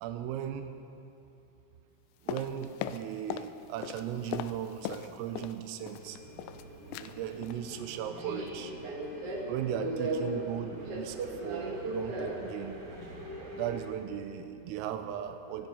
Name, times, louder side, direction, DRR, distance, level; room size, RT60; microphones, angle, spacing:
voice 1, 0.0-0.8 2.2-6.2 6.9-8.7 9.5-12.8 13.3-15.7, right 9 dB, 85° right, 8 dB, 3.5 m, -37 dB
sound 1, 2.3-3.5 3.8-5.6 5.9-6.6 6.9-7.1 7.4-7.6 8.0-8.2 8.5-8.6, left 11 dB, 85° left, 2.7 m, -39 dB
Subway metro underground, 5.9-13.9, right 2 dB, 50° right, 1.8 m, -38 dB
19.5 x 12.0 x 5.6 m, 2.7 s
omnidirectional pair, 5.9 m